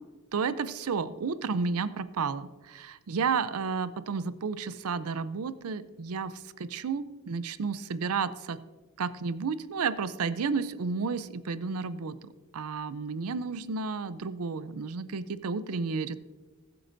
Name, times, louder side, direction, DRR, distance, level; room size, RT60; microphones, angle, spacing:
voice 1, 0.3-8.6 9.0-16.2, right 5 dB, 85° right, 14 dB, 0.5 m, -32 dB
20.0 x 7.7 x 2.6 m, 1.3 s
head